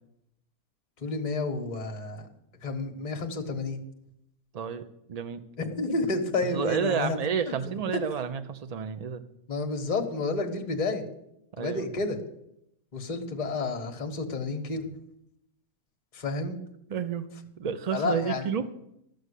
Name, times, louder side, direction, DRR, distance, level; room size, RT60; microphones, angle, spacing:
voice 1, 1.0-2.3 2.6-3.8 5.6-7.2 7.5-7.6 9.5-11.0 11.6-12.2 12.9-14.9 16.1-16.6 17.9-18.5, left 3 dB, 30° left, 4 dB, 1.3 m, -30 dB
voice 2, 4.5-5.4 6.5-9.2 11.6-11.9 16.9-17.3 17.6-18.7, right 7 dB, 40° right, 10 dB, 0.6 m, -30 dB
13.0 x 6.5 x 8.2 m, 0.81 s
omnidirectional pair, 1.6 m